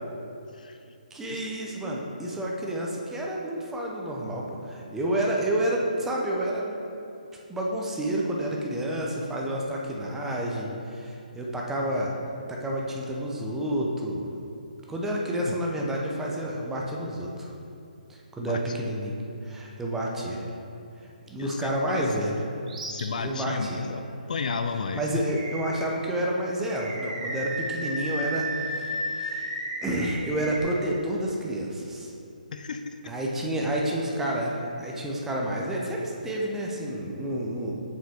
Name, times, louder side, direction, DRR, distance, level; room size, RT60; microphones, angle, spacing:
voice 1, 0.5-0.9 1.3-1.5 15.5-15.6 18.4-18.9 21.4-22.1 22.9-25.1 32.5-33.0, left 5 dB, 60° left, 8 dB, 0.4 m, -34 dB
voice 2, 1.1-6.7 7.5-12.1 12.5-14.3 14.9-17.5 18.3-19.2 19.4-20.5 21.3-22.4 23.2-23.8 24.9-29.5 29.8-32.1 33.1-37.8, right 1 dB, 5° right, -2 dB, 0.8 m, -29 dB
Animal, 22.7-23.0 23.5-23.6 25.2-26.0 26.6-30.6, right 1 dB, 55° right, 1.4 m, -33 dB
7.3 x 5.8 x 3.6 m, 2.7 s
figure-of-eight pair, 140°, 5 cm